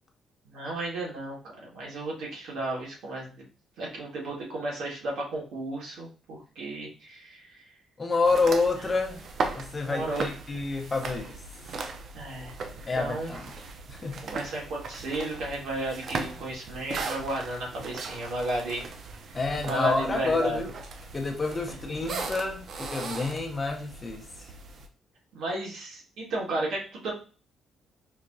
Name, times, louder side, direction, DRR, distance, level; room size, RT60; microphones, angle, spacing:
voice 1, 0.5-3.3 3.8-7.6 9.8-10.2 12.1-13.3 14.2-18.9 19.7-20.6 21.7-21.8 25.3-27.1, right 2 dB, 80° right, 1.8 m, -33 dB
voice 2, 8.0-11.4 12.9-13.6 13.9-14.3 19.3-20.7 21.1-24.3, left 3 dB, 25° left, 0.7 m, -28 dB
sound 1, 8.2-24.9, right 4 dB, 55° right, 0.5 m, -38 dB
4.7 x 2.8 x 2.6 m
cardioid pair, 125°, 0 cm